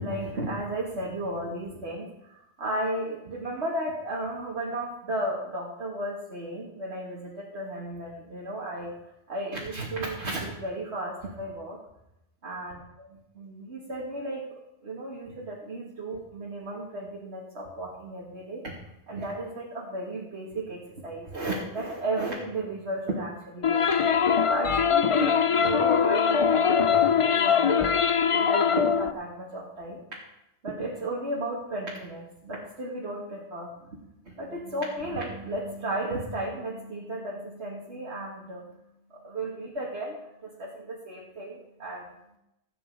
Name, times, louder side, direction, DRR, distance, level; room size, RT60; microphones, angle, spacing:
voice 1, 0.0-8.9 9.3-11.8 12.4-12.8 13.4-14.4 14.8-18.7 19.1-24.1 24.5-28.0 28.3-30.0 30.6-33.7 34.3-38.8 39.1-40.1 40.4-42.0, right 1 dB, 70° right, -4 dB, 2.5 m, -34 dB
sound 1, 23.6-29.1, left 7 dB, 45° left, 0.4 m, -22 dB
18.0 x 9.0 x 5.0 m, 0.85 s
omnidirectional pair, 1.1 m